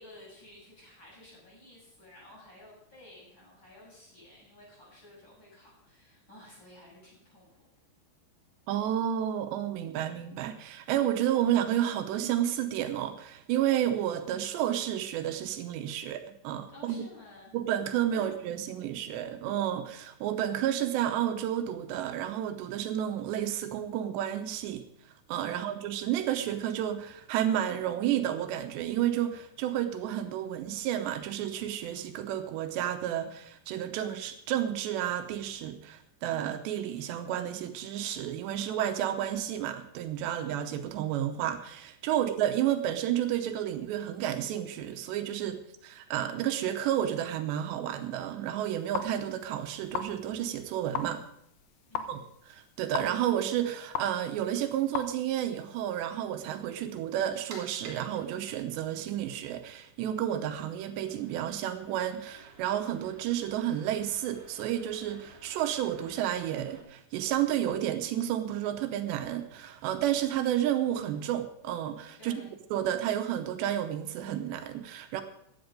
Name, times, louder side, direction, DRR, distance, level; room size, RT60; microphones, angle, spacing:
voice 1, 0.0-7.6 16.7-17.5 18.1-18.8 25.5-25.7 42.1-42.3 51.9-52.2 72.2-72.5, left 1 dB, 25° left, -5 dB, 7.6 m, -53 dB
voice 2, 8.7-17.1 17.5-24.9 25.3-51.2 52.1-52.2 52.5-72.3 72.7-75.2, right 11 dB, 85° right, 8 dB, 3.1 m, -31 dB
sound 1, 48.6-56.1, left 8 dB, 80° left, 1.7 m, -40 dB
sound 2, 57.1-66.8, right 3 dB, 50° right, 3.9 m, -54 dB
15.0 x 10.5 x 5.2 m, 0.73 s
omnidirectional pair, 5.0 m